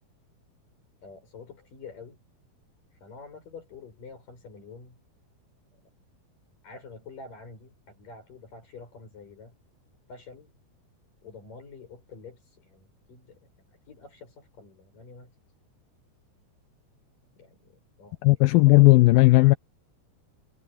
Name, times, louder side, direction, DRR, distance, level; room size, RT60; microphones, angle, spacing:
voice 1, 1.0-2.2 3.0-5.0 6.6-9.6 10.1-10.5 11.2-15.3 17.4-18.2, left 4 dB, 50° left, 8.7 m, -47 dB
voice 2, 18.2-19.5, left 21 dB, 80° left, 2.1 m, -16 dB
omnidirectional pair, 4.9 m